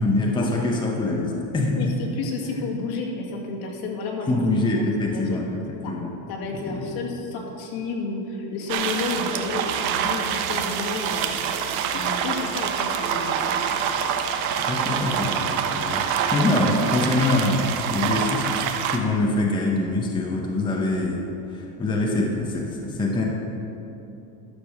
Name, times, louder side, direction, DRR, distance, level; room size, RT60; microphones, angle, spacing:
voice 1, 0.0-1.9 2.5-2.6 4.3-6.1 6.7-6.9 14.7-18.5 18.9-21.2 21.5-23.2, left 2 dB, 10° left, -1 dB, 0.8 m, -24 dB
voice 2, 1.8-4.4 5.0-5.4 5.8-5.9 6.3-11.3 11.9-13.7, left 3 dB, 60° left, -1 dB, 2.1 m, -31 dB
sound 1, 8.7-19.0, right 8 dB, 80° right, 1.0 m, -26 dB
11.5 x 6.9 x 6.5 m, 3.0 s
cardioid pair, 150°, 42 cm